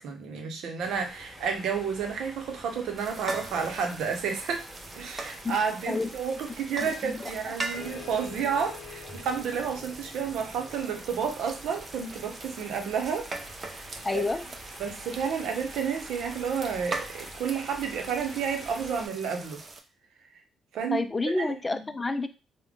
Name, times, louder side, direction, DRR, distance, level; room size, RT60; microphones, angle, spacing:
voice 1, 0.0-4.7 4.9-13.3 13.7-14.2 14.8-19.6 20.7-21.0 21.4-21.9, right 6 dB, 80° right, 4 dB, 0.7 m, -31 dB
sound 1, 0.8-19.1, equal, 5° left, 1.4 m, -47 dB
sound 2, 3.0-19.8, right 3 dB, 35° right, 0.6 m, -41 dB
voice 2, 6.8-7.3 14.0-14.4 20.9-22.3, left 3 dB, 20° left, 10 dB, 0.4 m, -29 dB
sound 3, 7.8-12.8, left 6 dB, 80° left, 0.6 m, -47 dB
3.4 x 2.2 x 3.5 m, 0.31 s
cardioid pair, 90°, 0 cm